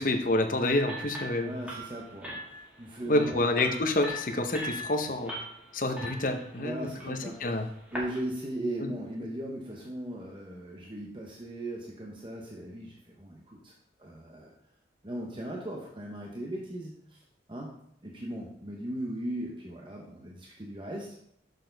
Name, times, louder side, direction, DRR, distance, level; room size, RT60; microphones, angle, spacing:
voice 1, 0.0-1.5 3.1-5.3 5.7-7.7 8.8-8.9, left 2 dB, 45° left, 6 dB, 0.8 m, -28 dB
sound 1, 0.7-8.2, equal, 5° right, 1.8 m, -41 dB
voice 2, 1.4-3.5 6.6-7.4 7.9-13.7 14.0-14.5 15.0-17.2 17.5-17.7 18.0-21.2, right 1 dB, 25° right, -2 dB, 0.9 m, -38 dB
6.7 x 6.4 x 3.9 m, 0.70 s
head